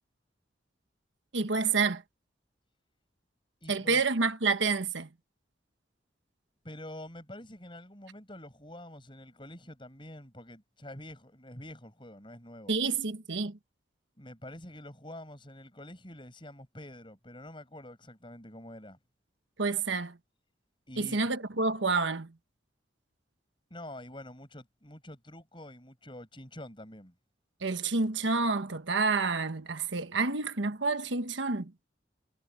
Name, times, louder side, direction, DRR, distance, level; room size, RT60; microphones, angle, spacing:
voice 1, 1.3-2.0 3.7-5.1 12.7-13.6 19.6-20.2 21.0-22.3 27.6-31.7, right 4 dB, 80° right, 1.3 m, -29 dB
voice 2, 3.6-4.0 6.6-12.8 14.2-19.0 20.9-21.2 23.7-27.1, left 1 dB, 25° left, 7.9 m, -47 dB
head